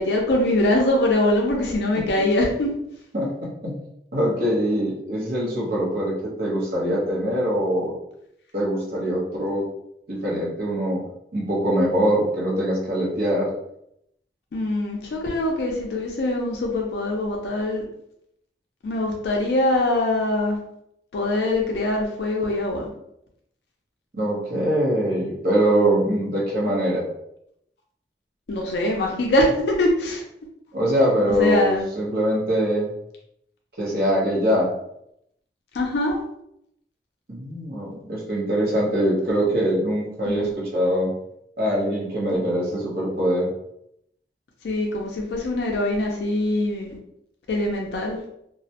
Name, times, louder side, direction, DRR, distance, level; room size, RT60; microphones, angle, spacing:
voice 1, 0.0-2.7 14.5-17.9 18.8-20.6 21.1-22.9 28.5-30.2 31.3-31.9 35.7-36.2 40.3-40.5 42.3-42.4 44.6-47.0 47.5-48.2, left 1 dB, 70° left, 0 dB, 0.4 m, -23 dB
voice 2, 3.1-3.8 4.1-6.1 6.4-7.9 8.5-9.6 10.1-11.0 11.3-13.5 24.1-27.0 30.7-32.9 33.8-34.7 37.3-41.1 41.6-43.5, equal, 55° right, -4 dB, 0.7 m, -23 dB
2.3 x 2.0 x 2.7 m, 0.77 s
head